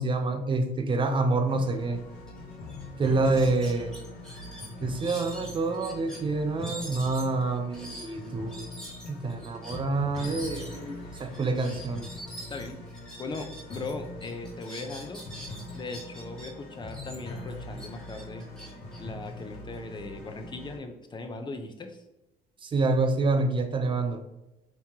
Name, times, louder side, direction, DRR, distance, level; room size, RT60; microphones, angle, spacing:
voice 1, 0.0-2.0 3.0-4.0 4.8-8.6 9.1-12.1 22.6-24.2, right 3 dB, 30° right, 7 dB, 0.6 m, -27 dB
sound 1, 1.5-20.8, left 2 dB, 85° left, 1.4 m, -42 dB
sound 2, 2.3-2.4 2.7-2.8 3.2-6.2 6.6-13.9 14.2-16.5 16.9-19.8, equal, 5° left, 1.5 m, -45 dB
voice 2, 3.2-3.6 12.5-12.8 13.2-15.2 15.7-18.4 19.0-22.0, left 3 dB, 25° left, 5 dB, 0.7 m, -39 dB
5.5 x 3.0 x 2.8 m, 0.94 s
cardioid pair, 110°, 17 cm